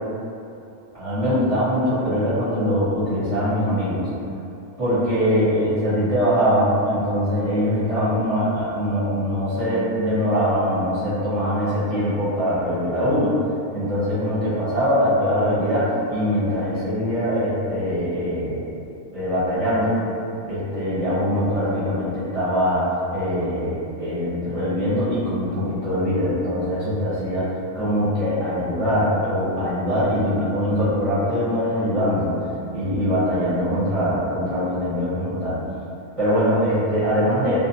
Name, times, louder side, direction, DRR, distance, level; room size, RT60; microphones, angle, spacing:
voice 1, 0.9-4.1 4.8-13.3 13.7-18.6 19.1-20.0 20.5-32.3 32.7-35.6 36.2-37.6, equal, 35° right, -12 dB, 0.7 m, -22 dB
2.4 x 2.1 x 2.6 m, 2.7 s
omnidirectional pair, 1.2 m